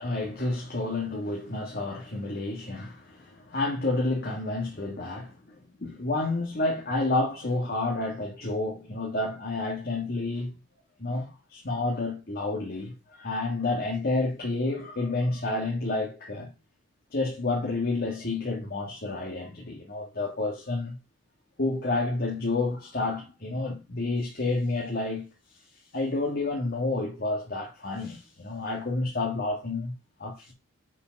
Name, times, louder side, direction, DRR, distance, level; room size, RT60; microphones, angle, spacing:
voice 1, 0.0-10.5 11.0-16.5 17.1-21.0 21.6-25.3 25.9-29.9 30.2-30.5, left 2 dB, 50° left, 1.7 m, -30 dB
6.8 x 5.1 x 5.8 m
head